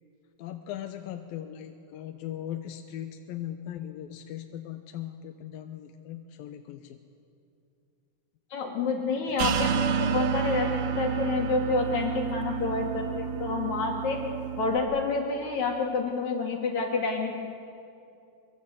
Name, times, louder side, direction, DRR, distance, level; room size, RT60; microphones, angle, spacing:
voice 1, 0.4-7.0 9.3-9.4, left 11 dB, 80° left, 6 dB, 2.7 m, -39 dB
voice 2, 8.5-10.7 11.0-14.2 14.6-17.3, left 4 dB, 55° left, 1 dB, 3.5 m, -28 dB
sound 1, 9.4-14.8, right 7 dB, 75° right, 2.6 m, -29 dB
24.0 x 23.5 x 8.2 m, 2.6 s
omnidirectional pair, 4.2 m